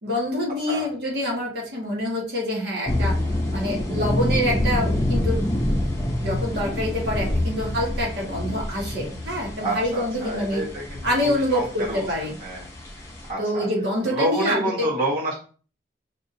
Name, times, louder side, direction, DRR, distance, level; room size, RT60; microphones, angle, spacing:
voice 1, 0.0-3.2 3.5-5.4 6.2-10.6 11.0-12.3 13.4-14.9, left 1 dB, 75° right, -3 dB, 1.5 m, -26 dB
sound 1, 2.9-13.3, left 1 dB, 15° left, 0.8 m, -27 dB
voice 2, 9.6-12.1 12.4-12.7 13.2-13.7 14.0-15.3, right 1 dB, 50° right, -6 dB, 1.2 m, -28 dB
5.9 x 2.7 x 2.7 m, 0.38 s
head